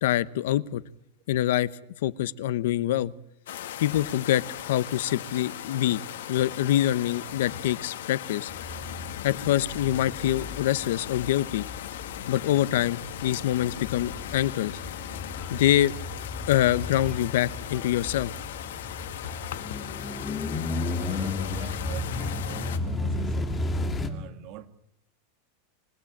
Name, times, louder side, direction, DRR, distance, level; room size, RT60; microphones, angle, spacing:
voice 1, 0.0-0.8 1.3-1.7 2.0-3.1 3.8-6.0 6.3-8.5 9.2-11.6 12.3-14.8 15.5-15.9 16.5-18.3 19.5-19.6, left 12 dB, 65° left, 0.9 m, -25 dB
sound 1, 3.5-22.8, left 11 dB, 90° left, 2.6 m, -38 dB
sound 2, 8.5-24.1, left 2 dB, 10° left, 1.9 m, -34 dB
sound 3, 14.5-23.8, left 1 dB, 5° right, 7.2 m, -54 dB
voice 2, 21.0-23.6 24.0-24.7, right 11 dB, 35° right, 1.8 m, -44 dB
26.5 x 17.0 x 8.8 m
supercardioid pair, 175°, 0 cm